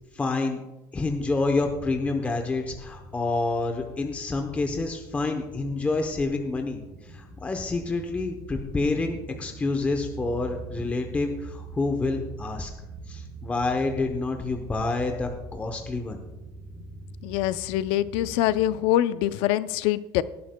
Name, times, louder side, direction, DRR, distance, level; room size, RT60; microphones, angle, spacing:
voice 1, 0.1-0.6 0.9-12.7 13.1-16.2, left 3 dB, 15° left, 4 dB, 0.8 m, -28 dB
sound 1, 1.1-18.9, right 2 dB, 5° right, 4.5 m, -43 dB
voice 2, 17.2-20.2, left 13 dB, 80° left, 15 dB, 0.5 m, -24 dB
18.0 x 11.0 x 2.2 m, 1.0 s
cardioid pair, 150°, 9 cm